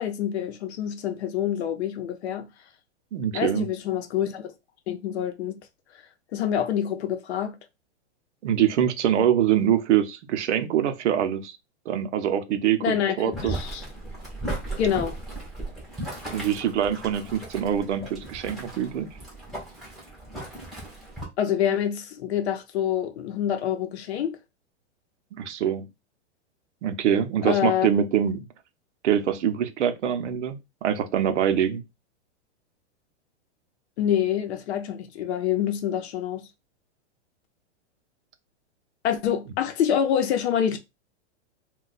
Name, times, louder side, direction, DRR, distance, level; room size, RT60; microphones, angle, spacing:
voice 1, 0.0-2.5 3.3-4.5 4.9-5.6 6.3-7.6 12.8-13.8 14.8-15.1 21.4-24.4 27.4-27.9 34.0-36.5 39.0-40.8, left 9 dB, 65° left, 0.7 m, -26 dB
voice 2, 3.1-3.7 8.4-11.6 11.9-13.5 16.3-19.1 25.3-25.9 26.8-28.5 29.0-31.8, right 9 dB, 75° right, 0.7 m, -24 dB
Boiling, 13.3-21.2, right 1 dB, ahead, 0.7 m, -36 dB
2.3 x 2.3 x 3.9 m
supercardioid pair, 155°, 35 cm